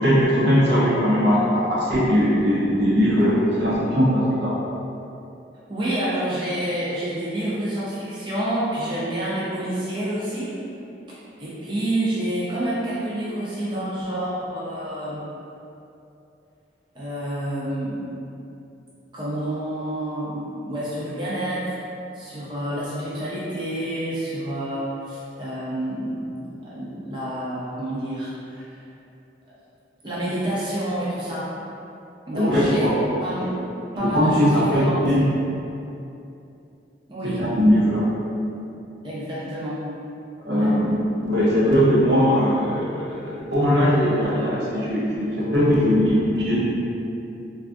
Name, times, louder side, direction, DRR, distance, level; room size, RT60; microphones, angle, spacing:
voice 1, 0.0-4.6 32.3-32.9 33.4-33.5 33.9-35.3 37.2-38.0 40.4-46.6, equal, 65° right, -6 dB, 0.7 m, -20 dB
voice 2, 5.7-10.5 11.1-15.2 16.9-18.0 19.1-21.8 22.1-28.8 29.5-29.6 30.0-31.5 32.3-32.9 33.2-33.5 34.0-35.0 37.1-37.5 39.0-39.8 40.5-40.7, right 1 dB, 25° right, -10 dB, 0.5 m, -28 dB
3.6 x 2.4 x 2.5 m, 2.8 s
head